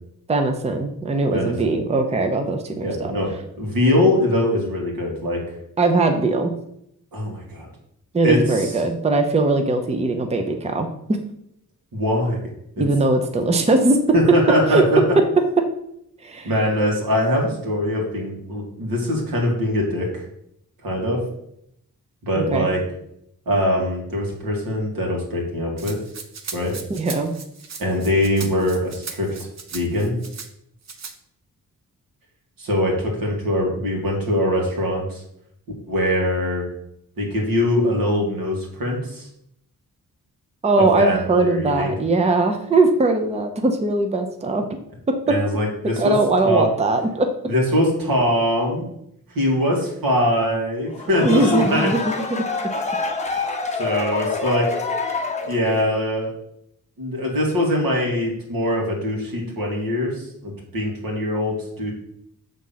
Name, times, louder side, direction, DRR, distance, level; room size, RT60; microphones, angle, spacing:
voice 1, 0.3-3.1 5.8-6.5 8.1-11.2 12.8-14.0 14.7-14.8 16.2-16.5 22.4-22.7 26.9-27.3 40.6-44.8 46.0-47.3 51.2-52.1, right 2 dB, 20° right, 5 dB, 0.6 m, -20 dB
voice 2, 1.3-1.8 2.8-3.3 3.6-5.4 7.1-7.7 8.2-8.7 11.9-12.4 12.8-12.9 14.1-15.0 16.4-20.2 20.8-21.2 22.2-22.8 23.5-26.0 26.5-26.8 27.8-29.3 29.7-30.2 32.6-35.2 35.9-36.7 37.2-39.3 40.8-41.9 45.3-46.1 46.4-46.7 47.5-48.9 49.3-51.9 53.8-54.7 55.5-56.3 57.0-61.9, left 1 dB, 85° right, -1 dB, 2.3 m, -22 dB
Rattle (instrument), 25.8-30.5 30.8-31.1, right 5 dB, 50° right, 0.8 m, -37 dB
sound 1, 50.9-56.0, left 4 dB, 20° left, 0.9 m, -26 dB
7.1 x 3.7 x 5.7 m, 0.75 s
wide cardioid pair, 150°, 34 cm